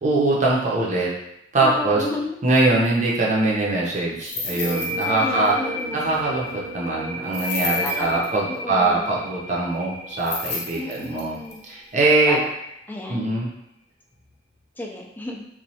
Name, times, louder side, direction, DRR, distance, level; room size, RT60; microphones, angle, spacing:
voice 1, 0.0-1.1 1.5-2.0 2.4-5.5 5.9-11.4 11.6-12.4 13.1-13.5, right 2 dB, 40° right, -5 dB, 0.6 m, -22 dB
voice 2, 1.6-2.4 5.0-6.0 7.8-9.1 10.8-11.6 12.3-12.5 12.9-13.3 14.8-15.5, left 1 dB, 10° left, 0 dB, 0.3 m, -32 dB
sound 1, 4.2-5.2 5.4-5.5 7.3-8.3 10.2-11.5, left 3 dB, 60° left, 0.6 m, -31 dB
sound 2, 4.4-11.9, left 1 dB, 10° right, 0.7 m, -32 dB
3.0 x 2.2 x 2.7 m, 0.80 s
head